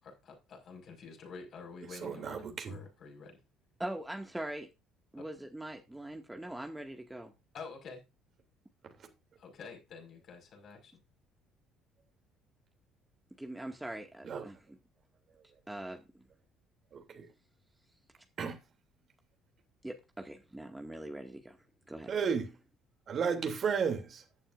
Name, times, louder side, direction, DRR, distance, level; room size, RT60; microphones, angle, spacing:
voice 1, 0.0-3.4 5.2-5.3 7.5-8.0 9.4-10.9, left 5 dB, 50° left, 5.5 m, -48 dB
voice 2, 2.0-2.8 14.2-14.4 16.9-17.3 18.4-18.6 22.1-22.5 23.1-24.2, right 6 dB, 45° right, 3.0 m, -33 dB
voice 3, 3.8-4.7 5.1-7.3 13.4-14.8 15.7-16.2 19.8-21.6 21.9-22.1, right 1 dB, 10° right, 2.1 m, -42 dB
15.0 x 11.5 x 2.6 m
figure-of-eight pair, 50°, 0 cm